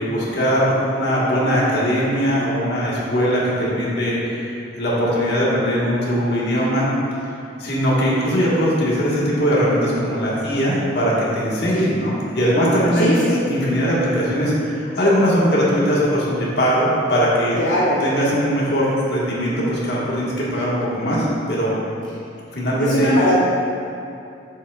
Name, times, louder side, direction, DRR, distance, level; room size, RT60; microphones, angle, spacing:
voice 1, 0.0-6.9 7.6-13.2 13.5-17.6 18.0-21.8 22.5-23.1, equal, 60° left, -6 dB, 1.5 m, -20 dB
voice 2, 13.0-13.4 17.6-18.0 22.8-23.3, left 1 dB, 85° left, -7 dB, 0.8 m, -19 dB
7.5 x 7.0 x 2.4 m, 2.5 s
head